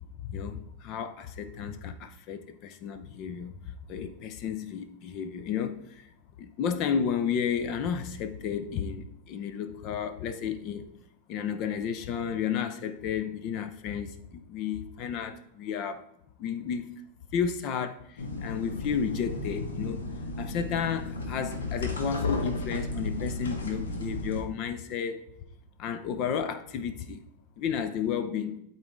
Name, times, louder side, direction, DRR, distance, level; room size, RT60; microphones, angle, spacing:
voice 1, 0.2-3.5 3.9-6.0 6.4-10.8 11.3-16.0 16.4-16.9 17.3-20.0 20.4-25.2 25.8-27.2 27.6-28.6, left 7 dB, 40° left, 0.6 m, -32 dB
sound 1, 18.2-24.4, left 2 dB, 65° left, 1.1 m, -34 dB
12.0 x 4.0 x 3.5 m
figure-of-eight pair, 90°, 0 cm